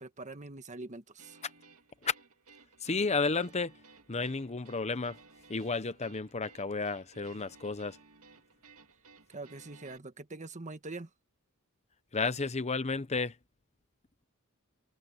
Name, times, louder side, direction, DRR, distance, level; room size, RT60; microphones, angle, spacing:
voice 1, 0.0-1.4 9.3-11.1, right 2 dB, 35° right, 1.5 m, -44 dB
sound 1, 1.2-10.0, right 4 dB, 70° right, 2.4 m, -58 dB
voice 2, 2.8-3.8 4.1-5.2 5.5-8.0 12.1-13.3, left 4 dB, 30° left, 0.9 m, -32 dB
head